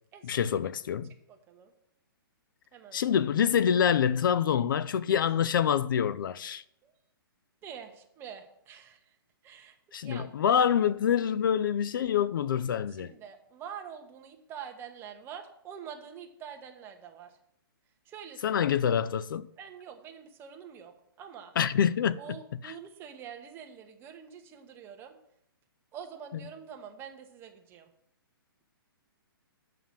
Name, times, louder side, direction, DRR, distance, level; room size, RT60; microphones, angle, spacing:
voice 1, 0.2-1.1 2.9-6.6 9.9-13.1 18.4-19.5 21.6-22.2 22.6-22.7, left 8 dB, 60° left, 0.4 m, -26 dB
voice 2, 1.3-1.7 2.7-3.2 6.8-6.9 7.6-9.2 9.4-9.8 10.0-10.3 12.9-17.4 18.0-18.6 19.6-21.6 22.2-25.2 25.9-27.9, right 8 dB, 20° right, 1.0 m, -46 dB
7.4 x 5.7 x 7.3 m
hypercardioid pair, 150°, 12 cm